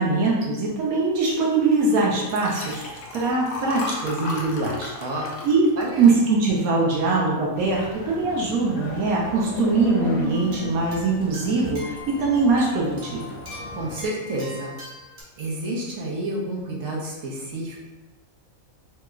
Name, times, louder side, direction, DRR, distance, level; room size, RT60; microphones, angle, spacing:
voice 1, 0.0-4.9 5.4-13.3, right 3 dB, 85° right, -3 dB, 1.1 m, -22 dB
Liquid, 2.2-6.8 7.3-7.6 7.8-7.9, left 2 dB, 60° left, 0.8 m, -35 dB
voice 2, 5.0-5.4 5.8-6.1 13.7-14.7 15.4-17.7, right 1 dB, 65° right, -3 dB, 1.1 m, -30 dB
sound 1, 7.6-14.1, left 4 dB, 75° left, 1.1 m, -34 dB
sound 2, 10.2-15.2, left 1 dB, 40° right, 1.1 m, -42 dB
3.3 x 3.0 x 2.3 m, 1.1 s
omnidirectional pair, 1.5 m